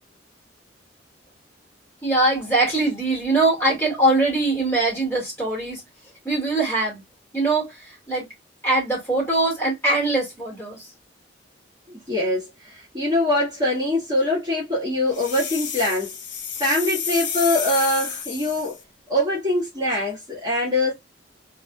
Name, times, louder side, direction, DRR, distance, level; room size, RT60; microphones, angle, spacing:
voice 1, 2.0-5.8 6.2-7.0 7.3-8.3 8.6-10.9, right 2 dB, 15° left, 2.1 m, -22 dB
voice 2, 11.9-16.1 16.6-18.8 19.1-20.9, left 1 dB, 20° right, 1.5 m, -23 dB
sound 1, 15.1-18.8, left 7 dB, 70° left, 0.8 m, -30 dB
3.3 x 2.7 x 2.3 m
head